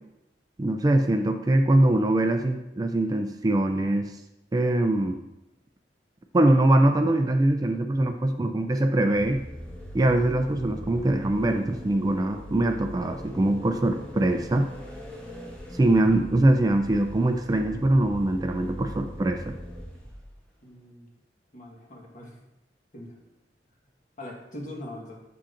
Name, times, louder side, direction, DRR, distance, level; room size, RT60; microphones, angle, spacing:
voice 1, 0.6-4.1 4.5-5.2 6.3-9.4 9.9-14.7 15.7-19.5, right 1 dB, 20° right, 6 dB, 0.3 m, -23 dB
sound 1, 9.1-20.4, equal, 10° left, 1.0 m, -41 dB
voice 2, 20.6-21.1 21.5-22.4 22.9-23.1 24.2-25.2, left 1 dB, 45° left, -1 dB, 1.4 m, -41 dB
7.3 x 7.0 x 2.5 m, 0.92 s
head